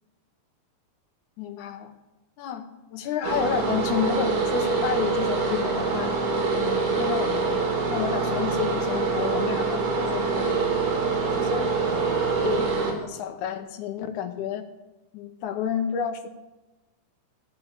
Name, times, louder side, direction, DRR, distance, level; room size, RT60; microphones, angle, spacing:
voice 1, 1.4-1.9 2.4-2.6 2.9-6.1 6.5-7.6 7.9-10.5 11.3-11.7 12.4-14.6 15.1-16.3, left 8 dB, 75° left, 6 dB, 1.9 m, -30 dB
sound 1, 3.2-12.9, right 4 dB, 80° right, 4.3 m, -25 dB
15.0 x 7.2 x 8.2 m, 1.1 s
omnidirectional pair, 4.4 m